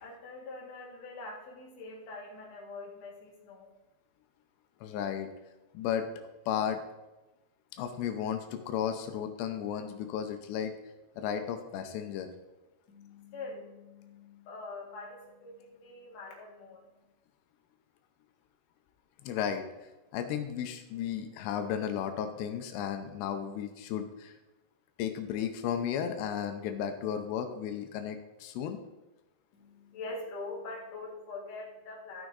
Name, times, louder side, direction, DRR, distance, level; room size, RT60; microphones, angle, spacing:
voice 1, 0.0-3.7 12.9-16.9 29.5-32.3, left 3 dB, 50° left, -2 dB, 2.6 m, -44 dB
voice 2, 4.8-5.3 5.7-6.1 6.5-6.8 7.8-10.7 11.2-12.3 19.2-19.6 20.1-24.3 25.0-28.8, left 9 dB, 90° left, 7 dB, 2.8 m, -34 dB
13.5 x 6.0 x 4.0 m, 1.0 s
omnidirectional pair, 5.0 m